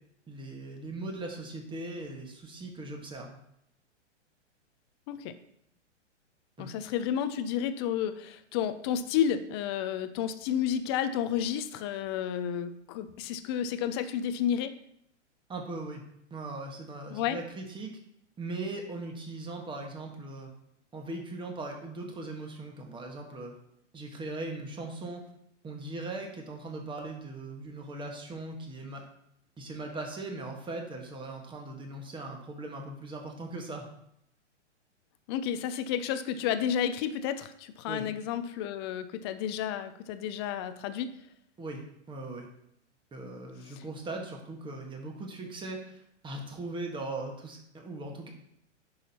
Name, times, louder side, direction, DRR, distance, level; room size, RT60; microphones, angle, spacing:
voice 1, 0.3-3.4 6.6-6.7 15.5-16.0 16.3-17.9 18.4-20.5 20.9-23.5 23.9-25.2 25.6-29.0 29.6-33.9 37.8-38.0 41.6-42.5 43.1-48.3, right 2 dB, 15° right, 2 dB, 1.4 m, -39 dB
voice 2, 6.6-14.7 17.1-17.4 35.3-41.1 43.7-43.8, left 9 dB, 25° left, 11 dB, 0.3 m, -31 dB
9.8 x 6.3 x 2.8 m, 0.76 s
hypercardioid pair, 130°, 36 cm